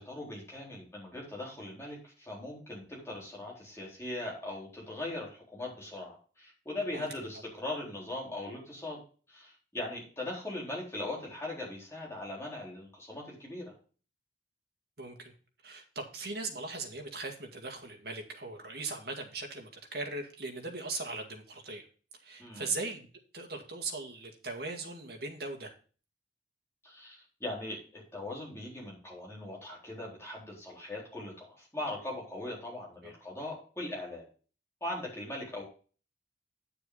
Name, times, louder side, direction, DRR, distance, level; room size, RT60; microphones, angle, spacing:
voice 1, 0.0-9.0 9.3-13.7 22.4-22.7 26.8-34.3 34.8-35.6, left 1 dB, 15° left, -4 dB, 4.0 m, -40 dB
voice 2, 15.0-15.3 15.6-21.9 22.2-23.1 23.3-25.7 33.0-33.1, right 3 dB, 60° right, 3 dB, 2.0 m, -39 dB
9.8 x 6.7 x 3.9 m, 0.38 s
head